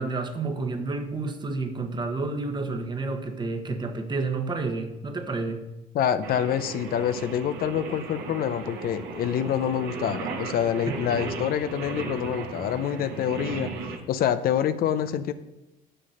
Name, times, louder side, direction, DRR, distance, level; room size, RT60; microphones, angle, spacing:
voice 1, 0.0-5.6 10.9-11.0, right 3 dB, 25° right, 6 dB, 1.1 m, -30 dB
voice 2, 5.9-13.7 14.1-15.3, left 9 dB, 60° left, 12 dB, 0.6 m, -26 dB
Singing, 6.2-14.0, right 4 dB, 85° right, 1.5 m, -36 dB
7.5 x 6.7 x 6.5 m, 0.96 s
cardioid pair, 110°, 17 cm